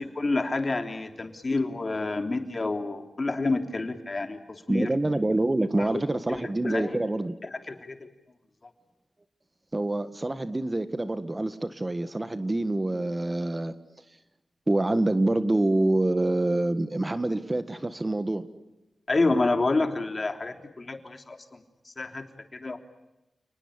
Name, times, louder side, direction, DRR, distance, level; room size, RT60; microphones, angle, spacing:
voice 1, 0.2-4.4 4.7-4.9 5.8-6.0 6.4-7.0 7.4-7.9 19.1-21.6 22.0-22.2 22.5-22.8, left 3 dB, 40° left, 7 dB, 3.3 m, -28 dB
voice 2, 4.7-7.3 9.7-13.7 14.7-18.4, right 2 dB, 25° right, 11 dB, 1.7 m, -26 dB
30.0 x 20.0 x 9.9 m, 0.99 s
cardioid pair, 65°, 0 cm